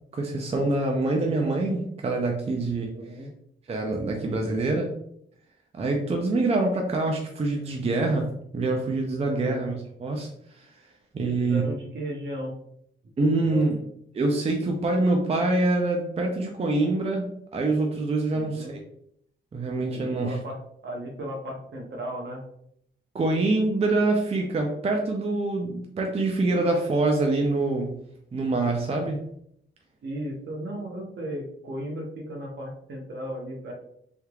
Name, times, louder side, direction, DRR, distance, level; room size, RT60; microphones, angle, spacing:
voice 1, 0.1-2.9 3.7-4.9 5.7-9.7 10.0-10.3 10.6-10.7 11.1-11.6 13.2-13.8 14.1-18.8 19.5-20.3 23.1-27.9 28.3-29.2, right 2 dB, 30° right, 2 dB, 0.4 m, -25 dB
voice 2, 2.9-3.3 9.2-9.7 11.2-12.5 13.4-13.7 18.3-18.8 19.9-22.4 30.0-33.7, equal, 65° right, 0 dB, 0.9 m, -35 dB
3.4 x 3.0 x 2.3 m, 0.70 s
wide cardioid pair, 125°, 20 cm